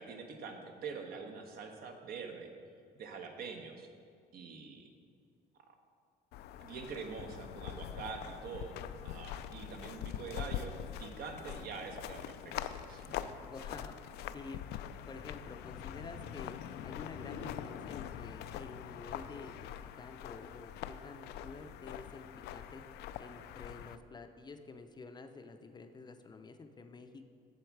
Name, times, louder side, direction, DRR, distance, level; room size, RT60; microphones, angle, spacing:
voice 1, 0.0-2.5 3.0-3.9 4.3-4.9 6.6-8.8 9.0-12.6 12.9-13.2 17.3-17.5, right 5 dB, 65° right, 4 dB, 1.1 m, -45 dB
sound 1, 6.3-24.0, left 10 dB, 75° left, 0.4 m, -44 dB
voice 2, 13.4-14.6 15.1-16.5 16.8-19.7 20.0-22.8 23.2-27.3, left 3 dB, 25° left, 7 dB, 0.5 m, -50 dB
7.9 x 7.2 x 4.7 m, 2.2 s
cardioid pair, 110°, 17 cm